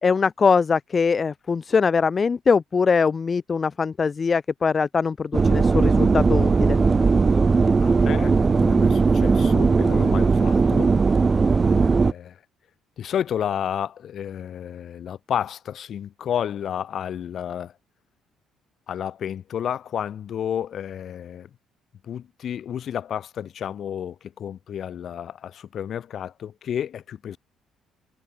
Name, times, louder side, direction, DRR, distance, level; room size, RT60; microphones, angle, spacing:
voice 1, 0.0-6.8, left 5 dB, 25° left, 1.3 m, -22 dB
sound 1, 5.3-12.1, right 4 dB, 20° right, 1.7 m, -18 dB
voice 2, 7.8-10.9 11.6-12.4 13.0-17.7 18.9-21.5 22.0-27.4, left 9 dB, 45° left, 8.0 m, -31 dB
cardioid pair, 155°, 0 cm